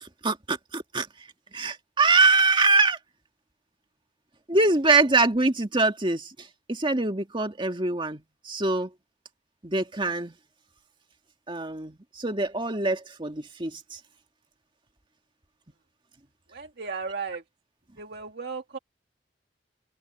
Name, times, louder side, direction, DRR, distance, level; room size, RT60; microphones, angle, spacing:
voice 1, 0.0-1.1 1.5-3.0 4.5-8.9 9.6-10.3 11.5-14.0, right 3 dB, 30° right, 2.1 m, -24 dB
voice 2, 16.5-17.4 18.0-18.8, right 5 dB, 65° right, 2.2 m, -35 dB
open air
head